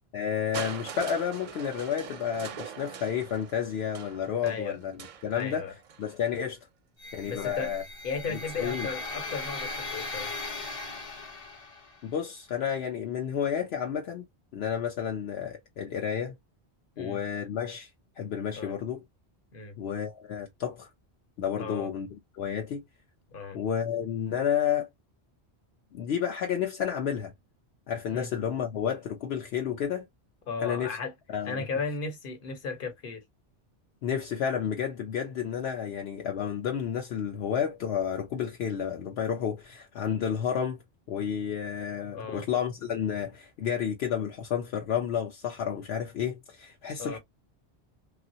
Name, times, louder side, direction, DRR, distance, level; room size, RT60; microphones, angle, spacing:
voice 1, 0.1-5.7 6.0-6.6 7.1-7.8 8.3-8.9 12.0-14.2 14.5-16.3 17.0-17.9 18.2-19.0 19.8-20.9 21.4-22.1 22.3-22.8 23.5-24.9 25.9-27.3 27.9-30.1 30.6-31.0 31.3-31.6 34.0-40.8 41.1-47.2, left 8 dB, 75° left, 0.8 m, -31 dB
Crushing, 0.5-6.4 7.4-7.5, right 7 dB, 55° right, 0.6 m, -42 dB
voice 2, 4.4-4.8 5.3-5.7 7.3-7.8 8.0-10.3 17.0-17.2 18.6-18.7 19.5-19.8 21.6-21.9 23.3-23.6 28.1-28.3 30.5-31.1 31.4-33.2 42.1-42.4 47.0-47.2, left 4 dB, 55° left, 1.1 m, -35 dB
sound 1, 7.0-12.0, left 3 dB, 35° left, 0.8 m, -38 dB
3.0 x 2.4 x 2.6 m
omnidirectional pair, 1.1 m